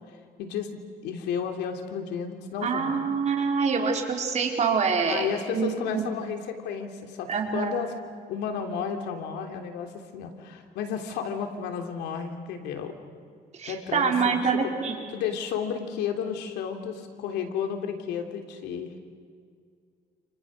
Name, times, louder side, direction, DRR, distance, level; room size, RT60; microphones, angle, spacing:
voice 1, 0.1-3.0 5.1-7.9 8.3-12.9 13.6-14.7 15.1-18.9, left 7 dB, 85° left, 5 dB, 3.1 m, -32 dB
voice 2, 2.6-5.3 5.5-6.0 7.3-7.7 13.5-15.0, right 5 dB, 40° right, 2 dB, 4.7 m, -25 dB
29.5 x 29.0 x 6.5 m, 2.1 s
cardioid pair, 110°, 17 cm